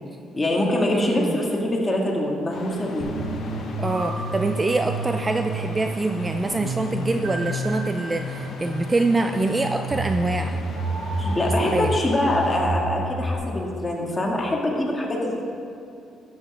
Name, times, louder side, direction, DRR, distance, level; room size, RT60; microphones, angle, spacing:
voice 1, 0.3-3.3 11.2-15.4, left 1 dB, 20° left, -1 dB, 1.8 m, -24 dB
voice 2, 0.9-1.4 3.8-10.6 11.7-11.9, right 2 dB, 20° right, 6 dB, 0.4 m, -25 dB
sound 1, 2.5-12.6, left 3 dB, 65° left, 1.1 m, -39 dB
sound 2, 3.0-13.3, right 1 dB, 75° right, 1.5 m, -30 dB
11.0 x 7.9 x 3.5 m, 2.7 s
cardioid pair, 95°, 0 cm